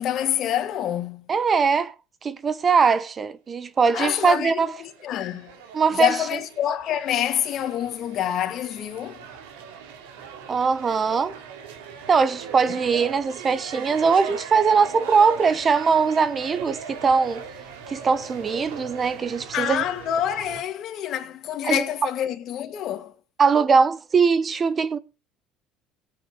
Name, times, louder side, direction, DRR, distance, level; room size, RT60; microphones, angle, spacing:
voice 1, 0.0-1.3 3.9-5.6 5.9-9.2 19.5-23.1, left 10 dB, 55° left, 2.4 m, -27 dB
voice 2, 1.3-1.9 2.2-4.7 5.7-6.2 10.5-11.4 12.1-17.5 17.9-19.8 21.6-21.8 23.4-25.0, right 5 dB, 35° right, 0.9 m, -21 dB
sound 1, 4.5-20.6, right 6 dB, 90° right, 3.0 m, -40 dB
17.0 x 8.4 x 5.1 m
supercardioid pair, 95°, 0 cm